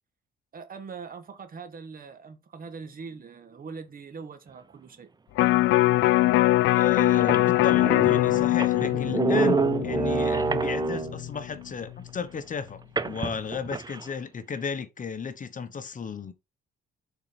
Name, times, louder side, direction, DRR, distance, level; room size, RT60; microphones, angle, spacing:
voice 1, 0.5-5.1, right 5 dB, 45° right, 1.7 m, -42 dB
Electric guitar, 5.4-11.6 12.0-12.1, left 17 dB, 85° left, 0.4 m, -23 dB
sound 1, 6.3-6.4 6.9-7.0 7.2-11.3 13.0-14.0, right 4 dB, 20° right, 0.6 m, -28 dB
voice 2, 6.7-16.3, left 6 dB, 40° left, 1.1 m, -34 dB
6.9 x 4.4 x 5.2 m
cardioid pair, 90°, 20 cm